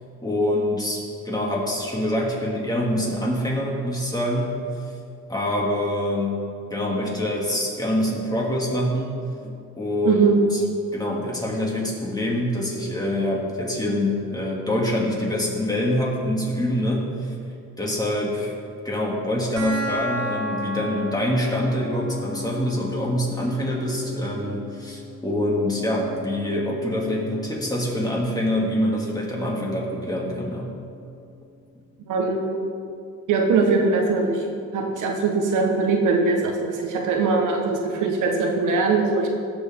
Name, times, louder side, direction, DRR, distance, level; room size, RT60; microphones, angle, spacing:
voice 1, 0.2-4.6 5.3-9.1 9.4-10.2 10.9-17.3 17.8-18.5 18.8-30.7, left 1 dB, 15° left, -3 dB, 2.9 m, -25 dB
voice 2, 10.0-10.4 32.1-32.6 33.3-34.4 34.7-39.3, right 4 dB, 85° right, 1 dB, 1.6 m, -21 dB
sound 1, 19.6-30.5, left 1 dB, 55° right, 2.8 m, -36 dB
17.0 x 6.9 x 3.8 m, 2.5 s
cardioid pair, 90°, 30 cm